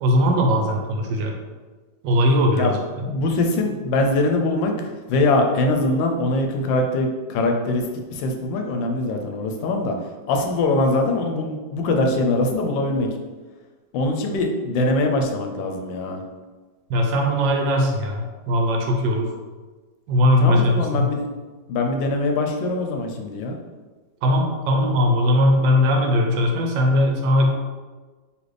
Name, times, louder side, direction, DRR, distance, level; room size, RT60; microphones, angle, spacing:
voice 1, 0.0-1.3 2.0-2.8 16.9-19.3 20.1-21.1 24.2-27.5, left 1 dB, 85° right, 2 dB, 1.4 m, -19 dB
voice 2, 2.6-7.8 8.1-10.0 10.3-13.2 13.9-16.2 20.4-21.3 21.7-23.5, left 2 dB, 85° left, 3 dB, 1.3 m, -22 dB
4.1 x 3.1 x 3.2 m, 1.3 s
omnidirectional pair, 2.0 m